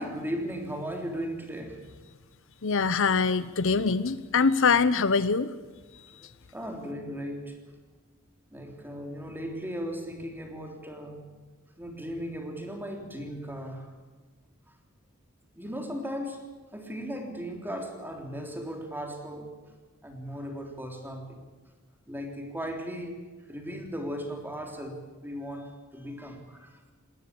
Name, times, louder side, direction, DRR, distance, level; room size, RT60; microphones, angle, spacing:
voice 1, 0.0-1.8 6.0-6.1 6.5-7.6 8.5-11.3 11.8-13.9 15.6-19.5 20.0-21.4 22.1-26.8, equal, 10° right, 3 dB, 3.5 m, -37 dB
voice 2, 2.6-5.5, left 5 dB, 65° left, 15 dB, 0.8 m, -23 dB
20.0 x 18.5 x 8.7 m, 1.4 s
head